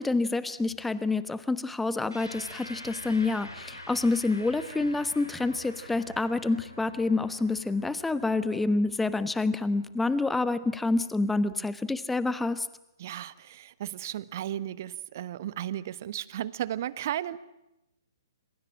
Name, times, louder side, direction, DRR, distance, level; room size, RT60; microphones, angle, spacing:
voice 1, 0.0-12.7, left 3 dB, 5° left, 15 dB, 1.2 m, -28 dB
sound 1, 2.1-10.8, left 1 dB, 90° left, 4.9 m, -46 dB
voice 2, 13.0-17.4, right 12 dB, 45° right, 17 dB, 1.2 m, -35 dB
27.0 x 26.5 x 7.5 m, 0.91 s
figure-of-eight pair, 120°, 2 cm